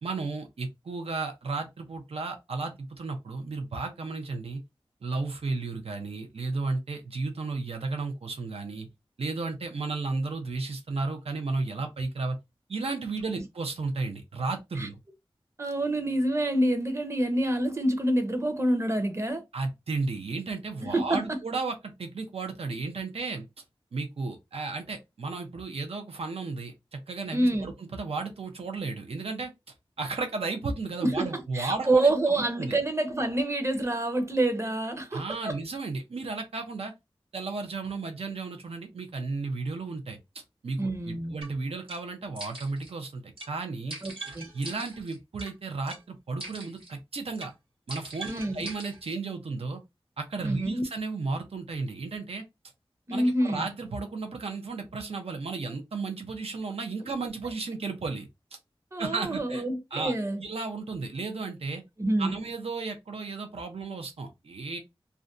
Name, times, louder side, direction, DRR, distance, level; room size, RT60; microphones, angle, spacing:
voice 1, 0.0-4.6 5.0-8.9 9.2-12.4 12.7-15.0 19.5-23.4 23.9-29.5 30.0-32.1 32.4-32.8 35.1-36.9 37.3-44.0 44.5-47.5 47.9-49.8 50.2-52.4 53.1-58.3 59.0-59.6 59.9-60.1 60.4-61.8 62.2-64.8, right 3 dB, 90° right, 0.6 m, -34 dB
voice 2, 15.6-19.4 20.8-21.4 27.3-27.7 31.0-35.6 40.8-41.3 44.0-44.5 48.3-48.7 50.4-50.8 53.1-53.7 58.9-60.4 62.0-62.4, right 1 dB, 30° right, 0.6 m, -27 dB
sound 1, 41.4-41.5 41.9-42.0 42.3-42.9 43.4-43.5 43.9-45.5 45.9-46.0 46.4-46.9 47.3-47.5 47.9-49.2, right 2 dB, 65° right, 1.2 m, -41 dB
2.5 x 2.2 x 2.5 m
wide cardioid pair, 55°, 10 cm